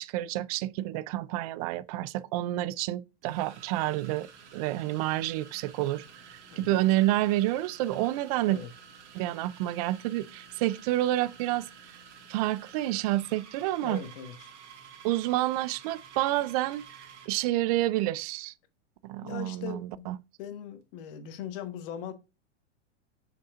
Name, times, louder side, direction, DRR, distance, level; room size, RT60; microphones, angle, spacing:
voice 1, 0.0-8.6 9.1-11.7 12.3-14.0 15.0-16.9 17.3-18.5 19.0-19.8 20.1-20.2, right 15 dB, 35° right, 0.4 m, -29 dB
sound 1, 1.9-2.1 3.2-17.4, right 6 dB, 70° right, 2.2 m, -51 dB
voice 2, 6.5-6.8 8.4-8.7 13.8-14.5 19.2-20.0 20.4-22.1, left 8 dB, 50° left, 1.4 m, -40 dB
7.5 x 5.7 x 2.5 m
supercardioid pair, 145°, 36 cm